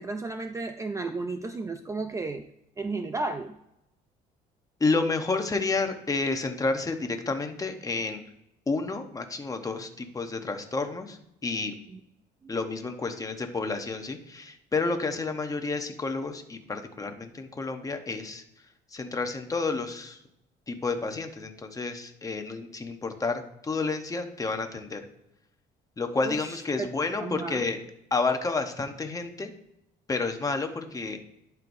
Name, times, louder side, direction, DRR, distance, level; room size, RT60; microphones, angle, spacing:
voice 1, 0.0-2.4 2.8-3.6 11.9-12.0 12.4-12.5 26.2-26.9 27.2-27.6, right 3 dB, 20° right, 7 dB, 0.4 m, -33 dB
voice 2, 4.8-8.2 8.7-11.7 12.5-18.4 18.9-20.2 20.7-25.0 26.0-27.8 28.1-29.5 30.1-31.2, left 3 dB, 20° left, 6 dB, 0.9 m, -30 dB
11.5 x 4.5 x 2.7 m, 0.83 s
cardioid pair, 110°, 17 cm